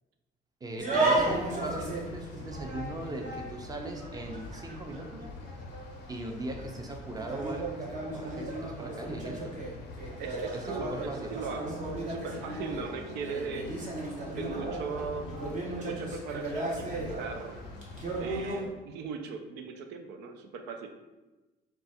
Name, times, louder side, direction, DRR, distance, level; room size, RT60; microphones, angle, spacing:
voice 1, 0.6-5.3 6.1-9.6 10.5-11.3, right 2 dB, 20° right, 3 dB, 0.6 m, -39 dB
sound 1, 0.8-18.7, right 2 dB, 45° right, 1.0 m, -35 dB
sound 2, 1.2-18.5, left 4 dB, 80° left, 0.5 m, -46 dB
voice 2, 10.2-13.9 14.2-15.3 15.7-17.6 18.2-20.9, right 5 dB, 85° right, 6 dB, 0.5 m, -39 dB
3.9 x 2.4 x 4.2 m, 1.1 s
cardioid pair, 110°, 17 cm